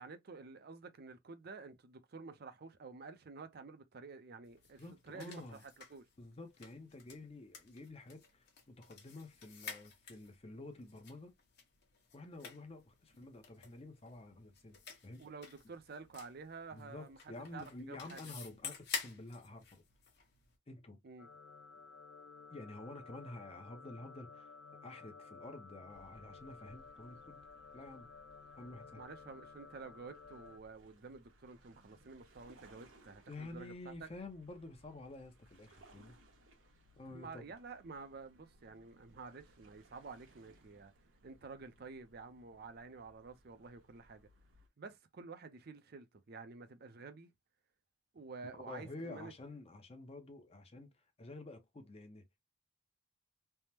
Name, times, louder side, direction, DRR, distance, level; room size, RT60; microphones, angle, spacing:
voice 1, 0.0-6.1 15.2-18.2 21.0-21.3 29.0-34.1 37.1-40.9 41.2-44.3 44.8-47.3 48.1-49.3, right 4 dB, 50° right, 0.5 m, -50 dB
sound 1, 4.4-20.5, left 6 dB, 55° left, 1.1 m, -50 dB
voice 2, 4.8-5.6 6.2-11.3 12.1-15.3 16.7-19.8 20.7-21.0 22.5-27.4 27.7-28.1 28.6-29.0 33.3-36.2 37.0-37.4 48.5-52.4, left 2 dB, 30° left, 0.6 m, -50 dB
sound 2, 21.2-30.6, left 4 dB, 80° left, 0.5 m, -55 dB
sound 3, 25.9-44.7, right 1 dB, 80° right, 1.1 m, -65 dB
3.4 x 2.1 x 2.8 m
head